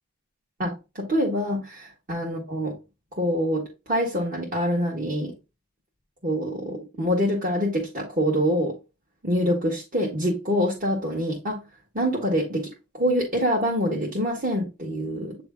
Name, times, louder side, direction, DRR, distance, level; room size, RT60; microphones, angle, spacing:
voice 1, 0.6-1.6 2.1-2.8 3.1-5.3 6.2-8.8 9.2-11.6 11.9-15.4, equal, 40° right, 1.5 m, -25 dB
8.3 x 3.2 x 3.6 m
head